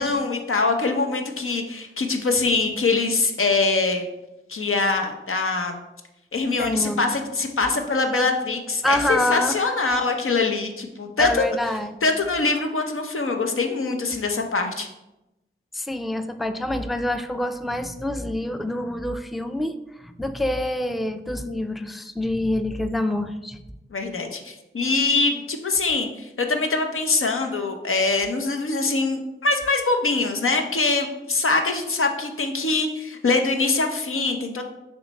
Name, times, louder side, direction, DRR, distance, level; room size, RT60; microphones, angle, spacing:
voice 1, 0.0-4.1 4.5-5.8 6.3-11.4 12.0-14.9 23.9-34.6, left 3 dB, 85° left, 4 dB, 0.7 m, -23 dB
voice 2, 6.6-7.1 8.8-9.7 11.2-12.0 15.7-23.6, left 1 dB, ahead, 9 dB, 0.3 m, -26 dB
6.2 x 3.2 x 5.2 m, 0.94 s
wide cardioid pair, 65°, 21 cm